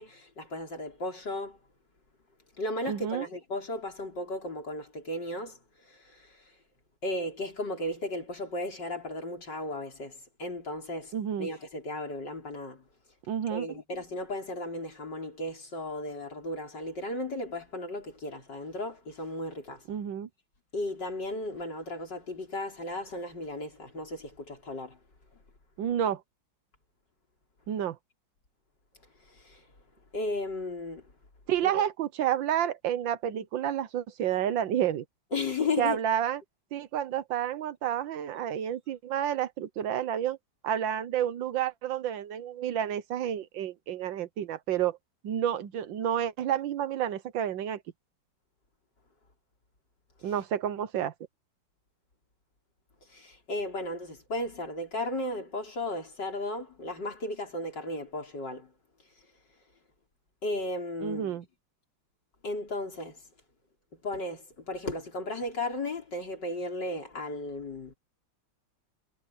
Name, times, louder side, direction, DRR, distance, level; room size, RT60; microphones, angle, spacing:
voice 1, 0.0-1.6 2.6-5.6 5.9-6.4 7.0-11.1 11.4-12.8 13.5-19.8 20.7-25.0 29.3-29.6 30.1-31.0 31.6-31.8 35.3-36.0 53.1-58.7 60.4-61.4 62.4-63.2 64.0-67.9, left 2 dB, 60° left, 5.2 m, -35 dB
voice 2, 2.9-3.3 11.1-11.5 13.3-13.7 19.9-20.3 25.8-26.2 27.7-28.0 31.5-35.0 35.8-36.4 36.7-40.4 40.6-45.0 45.2-47.8 50.2-51.1 61.0-61.4, right 10 dB, 75° right, 1.6 m, -30 dB
omnidirectional pair, 2.1 m